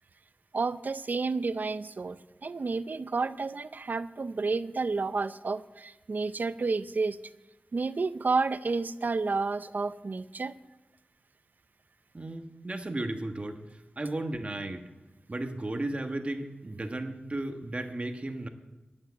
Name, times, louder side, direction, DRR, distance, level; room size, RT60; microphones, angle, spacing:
voice 1, 0.5-7.2 7.7-10.5, right 4 dB, 60° right, 14 dB, 0.5 m, -30 dB
voice 2, 12.1-13.6 14.0-14.8 15.3-18.5, right 2 dB, 40° right, 5 dB, 1.4 m, -34 dB
11.0 x 8.8 x 6.9 m, 1.1 s
wide cardioid pair, 55°, 3 cm